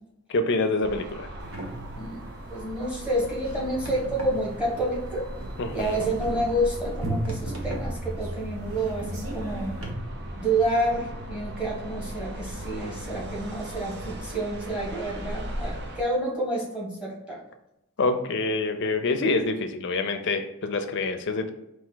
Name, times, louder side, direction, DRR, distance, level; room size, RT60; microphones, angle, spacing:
voice 1, 0.3-1.3 5.6-6.1 18.0-21.5, left 3 dB, 55° left, 7 dB, 0.5 m, -26 dB
sound 1, 0.8-16.0, right 1 dB, 50° right, 0.6 m, -37 dB
sound 2, 1.4-9.9, right 1 dB, 70° right, 1.0 m, -38 dB
voice 2, 2.5-5.3 5.7-9.7 10.4-17.4, right 1 dB, 5° right, -3 dB, 1.2 m, -29 dB
4.4 x 2.6 x 3.9 m, 0.85 s
head